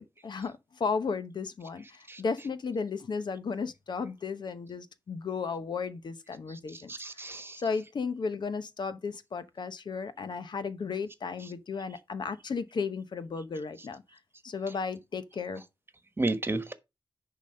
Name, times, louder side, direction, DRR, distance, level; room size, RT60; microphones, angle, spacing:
voice 1, 0.0-6.9 7.6-14.0 14.4-15.6, left 5 dB, 70° left, 0.9 m, -34 dB
voice 2, 6.7-7.6 16.2-16.7, right 2 dB, 30° right, 1.2 m, -32 dB
10.0 x 4.1 x 5.3 m
wide cardioid pair, 85°, 8 cm